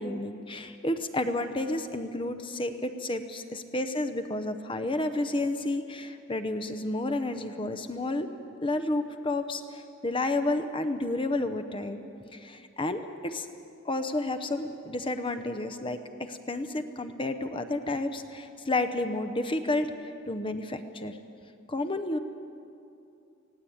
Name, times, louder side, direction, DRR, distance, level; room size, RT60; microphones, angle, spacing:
voice 1, 0.0-3.4 3.7-8.3 8.6-12.0 12.3-13.5 13.8-21.2 21.7-22.2, left 2 dB, 25° left, 9 dB, 0.8 m, -31 dB
19.0 x 16.5 x 8.7 m, 2.6 s
head